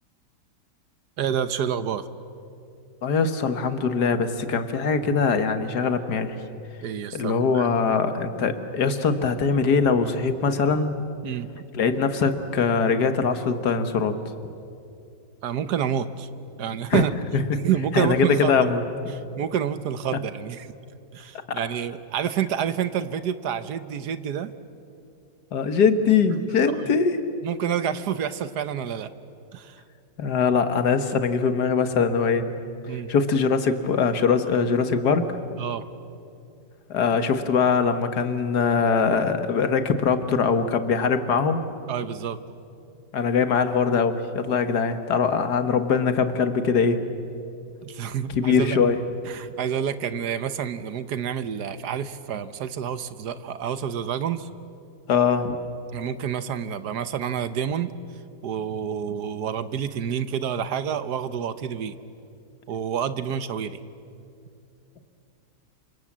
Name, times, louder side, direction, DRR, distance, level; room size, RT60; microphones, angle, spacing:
voice 1, 1.2-2.1 6.8-7.7 11.2-11.6 15.4-16.3 16.6-17.1 17.6-18.6 19.1-20.7 21.1-24.5 26.7-26.9 27.4-29.1 29.5-29.8 32.9-33.1 35.6-35.9 41.9-42.4 47.8-48.8 49.2-54.5 55.9-57.9 58.4-62.0 62.7-63.8, right 8 dB, 70° right, 13 dB, 1.4 m, -28 dB
voice 2, 3.0-6.4 7.1-11.0 11.7-14.1 16.9-17.1 17.3-17.4 17.9-18.8 21.5-21.6 25.5-27.2 30.2-32.4 33.1-35.2 36.9-41.6 43.1-47.0 48.3-49.0 55.1-55.6, left 5 dB, 65° left, 9 dB, 2.0 m, -22 dB
27.5 x 25.5 x 7.4 m, 2.6 s
omnidirectional pair, 1.9 m